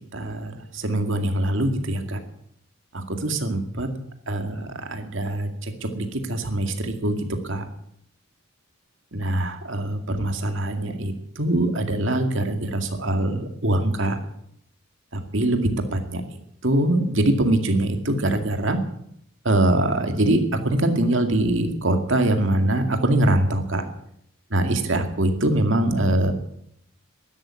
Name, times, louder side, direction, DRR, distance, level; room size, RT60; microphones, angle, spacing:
voice 1, 0.1-2.2 2.9-3.9 4.3-5.5 5.8-7.2 7.4-7.7 9.1-14.2 15.1-15.6 15.9-16.2 16.6-18.8 19.4-23.8 24.5-26.3, right 1 dB, 55° right, 6 dB, 2.2 m, -23 dB
12.5 x 11.5 x 9.9 m, 0.73 s
head